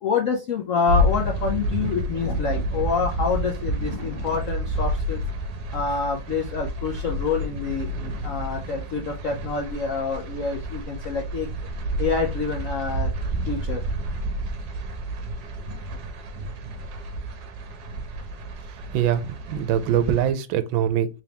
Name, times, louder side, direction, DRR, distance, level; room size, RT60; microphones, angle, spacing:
voice 1, 0.0-5.2 5.7-11.5 12.0-13.1 13.5-13.9, left 5 dB, 70° left, 0.7 m, -27 dB
sound 1, 0.9-20.3, equal, 65° right, 1.3 m, -30 dB
voice 2, 18.9-21.1, right 10 dB, 80° right, 1.3 m, -23 dB
3.7 x 3.4 x 2.8 m
omnidirectional pair, 2.1 m